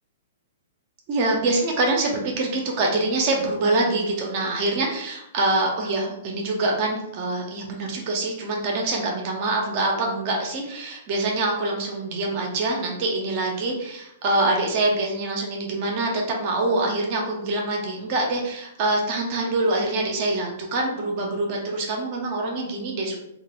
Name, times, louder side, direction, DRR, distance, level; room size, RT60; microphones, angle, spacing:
voice 1, 1.1-23.2, right 2 dB, 45° right, 0 dB, 0.8 m, -25 dB
2.9 x 2.4 x 3.0 m, 0.80 s
hypercardioid pair, 120°, 0 cm